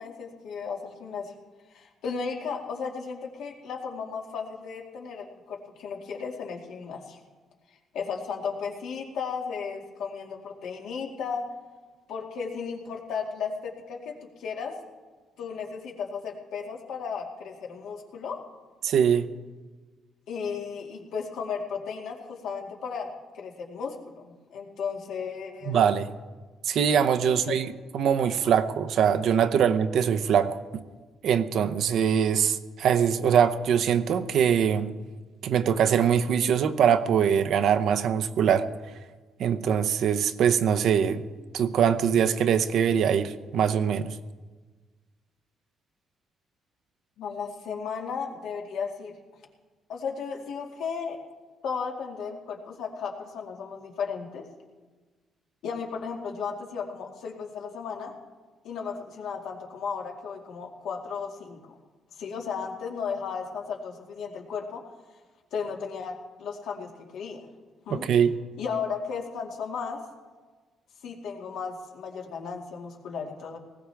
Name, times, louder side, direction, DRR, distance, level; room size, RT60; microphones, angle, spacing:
voice 1, 0.0-1.3 1.7-7.2 7.9-11.5 12.1-14.7 15.4-18.4 20.3-23.1 23.3-25.8 27.2-27.6 47.2-49.1 49.9-51.2 51.6-54.5 55.6-58.1 58.6-61.6 62.2-64.8 65.5-67.4 67.9-68.0 68.6-70.0 71.0-73.6, left 6 dB, 80° left, 2.2 m, -35 dB
voice 2, 18.8-19.3 25.7-26.1 26.6-27.7 27.9-30.8 31.2-34.9 35.4-38.7 39.4-41.3 41.5-44.2 67.9-68.3, right 8 dB, 75° right, 0.8 m, -23 dB
19.0 x 16.0 x 3.5 m
cardioid pair, 90°, 0 cm